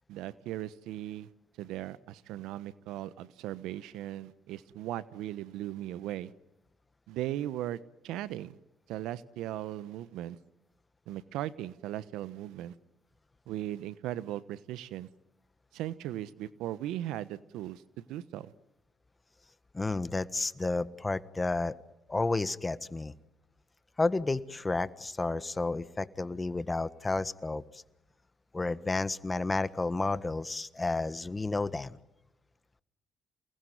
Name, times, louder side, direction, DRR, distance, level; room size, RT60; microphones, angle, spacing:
voice 1, 0.1-1.3 1.6-6.3 7.1-8.6 8.9-10.4 11.1-12.7 13.5-15.1 15.7-18.5, right 13 dB, 75° right, 17 dB, 1.1 m, -38 dB
voice 2, 19.7-21.7 22.1-23.1 24.0-27.8 28.5-32.0, left 3 dB, 20° left, 15 dB, 1.6 m, -31 dB
29.0 x 20.0 x 9.5 m, 0.96 s
hypercardioid pair, 60°, 0 cm